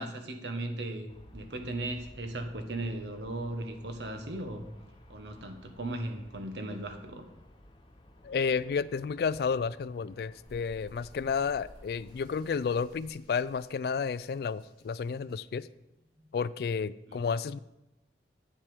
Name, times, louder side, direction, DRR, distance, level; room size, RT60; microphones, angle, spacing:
voice 1, 0.0-4.6 5.1-7.3 17.1-17.2, right 1 dB, 75° right, 5 dB, 1.2 m, -37 dB
Aircraft, 1.1-12.7, left 1 dB, 25° left, 0.8 m, -55 dB
voice 2, 8.2-15.7 16.3-17.6, left 5 dB, 60° left, 18 dB, 0.3 m, -31 dB
sound 1, 10.4-16.6, equal, 60° right, 3.8 m, -57 dB
9.8 x 7.4 x 5.0 m, 0.93 s
head